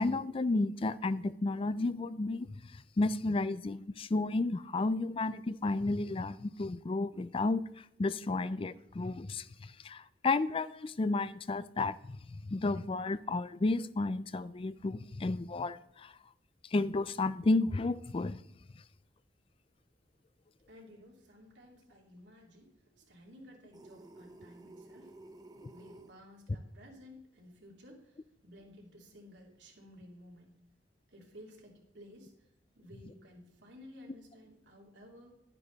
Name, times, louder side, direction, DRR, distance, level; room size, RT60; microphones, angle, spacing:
voice 1, 0.0-2.5 2.7-7.6 8.0-12.2 12.5-16.1 16.7-18.4, left 2 dB, 30° left, 0.4 m, -32 dB
voice 2, 20.7-25.1 25.7-30.6 31.1-32.5 32.7-35.4, left 1 dB, 85° right, 3.1 m, -55 dB
sound 1, 23.7-26.1, right 2 dB, 20° right, 0.8 m, -53 dB
12.0 x 9.8 x 4.1 m
head